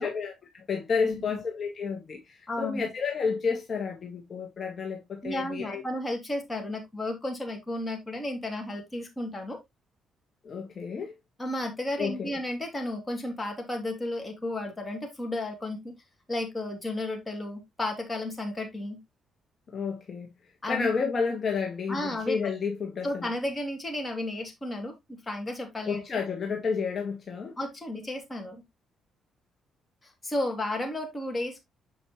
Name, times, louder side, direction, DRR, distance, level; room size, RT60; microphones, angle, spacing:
voice 1, 0.0-5.8 10.4-11.1 12.0-12.3 19.7-20.3 20.7-23.2 25.9-27.5, left 5 dB, 45° left, 1.6 m, -31 dB
voice 2, 1.0-1.3 2.5-2.9 5.2-9.6 11.4-15.9 16.3-19.0 20.6-20.9 21.9-22.5 23.0-26.0 27.6-28.6 30.0-31.6, left 1 dB, 20° left, 2.7 m, -33 dB
7.2 x 5.0 x 3.1 m
cardioid pair, 90°, 0 cm